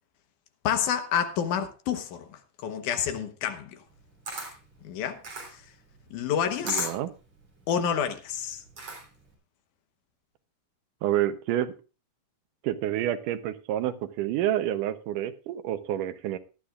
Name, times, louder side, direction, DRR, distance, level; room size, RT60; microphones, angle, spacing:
voice 1, 0.6-3.8 4.8-5.2 5.5-5.6 6.1-6.9 7.7-8.6, left 8 dB, 75° left, 2.6 m, -29 dB
Camera, 3.9-9.3, right 3 dB, 50° right, 4.5 m, -40 dB
voice 2, 6.7-7.1 11.0-11.7 12.6-16.4, right 12 dB, 90° right, 2.4 m, -28 dB
18.5 x 11.5 x 2.4 m
omnidirectional pair, 3.6 m